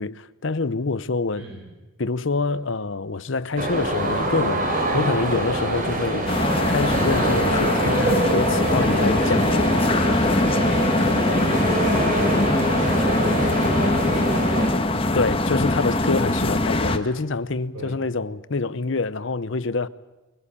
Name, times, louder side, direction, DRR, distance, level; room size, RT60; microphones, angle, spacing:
voice 1, 0.0-1.5 2.0-6.3 6.7-9.9 15.1-19.9, left 3 dB, 60° left, 0.8 m, -26 dB
voice 2, 1.4-1.7 4.9-5.1 10.7-14.6 17.7-18.0, right 1 dB, 75° right, 5.8 m, -36 dB
sound 1, 3.6-14.7, right 1 dB, 40° right, 3.7 m, -25 dB
sound 2, 6.3-17.0, left 2 dB, 25° left, 1.3 m, -22 dB
22.0 x 21.5 x 8.5 m
head